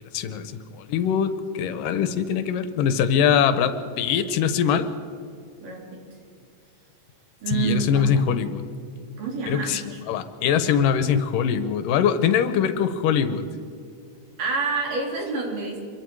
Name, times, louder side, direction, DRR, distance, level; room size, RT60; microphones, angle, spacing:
voice 1, 0.1-4.9 7.5-8.6 9.5-9.8 10.1-13.4, left 8 dB, 85° left, 11 dB, 2.6 m, -22 dB
voice 2, 5.6-6.0 7.4-8.1 9.1-10.0 14.4-15.8, right 5 dB, 75° right, 0 dB, 5.0 m, -28 dB
26.0 x 23.0 x 4.7 m, 2.3 s
omnidirectional pair, 3.8 m